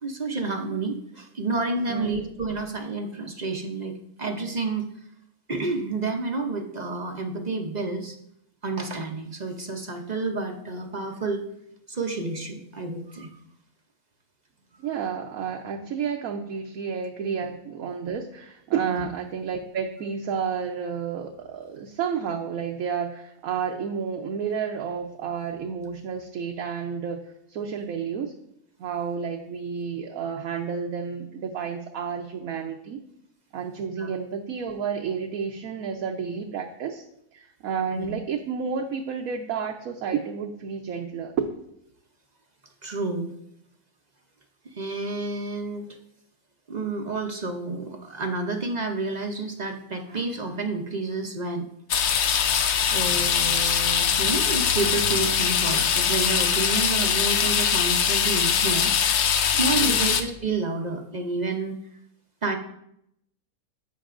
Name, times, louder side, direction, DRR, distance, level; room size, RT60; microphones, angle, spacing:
voice 1, 0.0-4.9 5.5-8.2 8.6-11.5 11.9-13.3 18.9-19.0 34.0-34.1 37.9-38.1 42.8-43.3 44.7-46.0 46.7-51.7 52.9-58.9 59.5-61.8 62.4-62.6, right 3 dB, 40° right, 4 dB, 0.6 m, -30 dB
voice 2, 1.9-2.3 14.8-27.2 27.5-28.3 28.8-33.0 33.5-37.0 37.3-41.5 59.8-60.1, right 6 dB, 75° right, 2 dB, 1.2 m, -31 dB
sound 1, 51.9-60.2, left 7 dB, 60° left, 0.8 m, -22 dB
11.0 x 7.8 x 2.5 m, 0.76 s
omnidirectional pair, 1.5 m